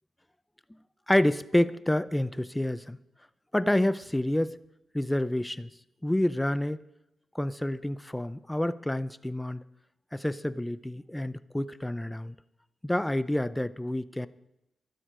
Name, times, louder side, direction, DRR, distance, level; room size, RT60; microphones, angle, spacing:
voice 1, 1.1-3.0 3.5-4.6 4.9-5.7 6.0-6.8 7.3-9.6 10.1-12.3 12.8-14.3, left 1 dB, 5° left, 15 dB, 0.5 m, -28 dB
13.0 x 12.0 x 5.1 m, 0.87 s
wide cardioid pair, 120°, 0 cm